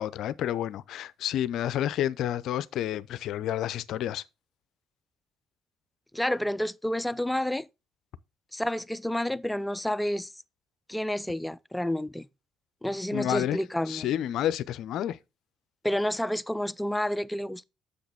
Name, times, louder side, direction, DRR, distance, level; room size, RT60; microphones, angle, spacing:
voice 1, 0.0-4.2 13.1-13.6 13.9-15.2, left 11 dB, 65° left, 0.5 m, -30 dB
voice 2, 6.1-7.7 8.5-10.3 10.9-12.3 12.8-14.1 15.8-17.6, left 1 dB, 10° left, 0.5 m, -29 dB
7.8 x 6.5 x 3.5 m
hypercardioid pair, 50°, 0 cm